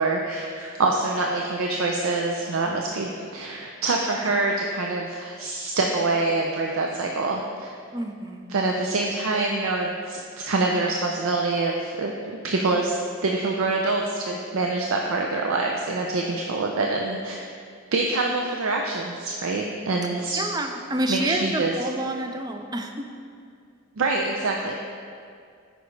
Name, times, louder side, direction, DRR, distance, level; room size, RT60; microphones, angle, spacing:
voice 1, 0.0-7.7 8.5-12.1 12.4-17.4 17.9-20.4 21.1-21.8 24.0-24.8, right 3 dB, 80° right, 1 dB, 0.5 m, -25 dB
voice 2, 7.9-8.5 20.3-23.1, right 1 dB, 20° right, 5 dB, 0.4 m, -28 dB
9.4 x 5.2 x 3.2 m, 2.3 s
head